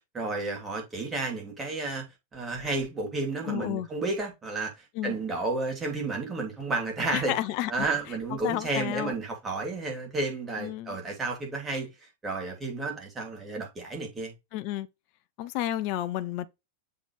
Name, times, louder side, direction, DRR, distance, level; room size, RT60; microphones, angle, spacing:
voice 1, 0.1-2.1 2.3-4.7 5.0-7.3 7.7-11.9 12.2-14.3, right 3 dB, 15° right, 2.8 m, -31 dB
voice 2, 3.4-3.9 5.0-5.2 7.1-7.9 8.4-9.1 10.6-11.0 14.5-14.9 15.4-16.5, left 13 dB, 45° left, 0.5 m, -31 dB
7.4 x 3.9 x 3.2 m
figure-of-eight pair, 90°, 0 cm